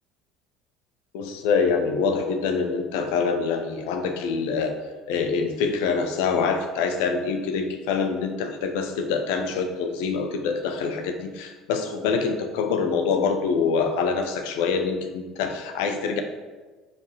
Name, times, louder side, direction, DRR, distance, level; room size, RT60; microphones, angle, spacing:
voice 1, 1.1-4.8 5.1-16.2, left 5 dB, 70° left, 6 dB, 0.7 m, -25 dB
5.2 x 4.9 x 4.8 m, 1.3 s
figure-of-eight pair, 60°, 0 cm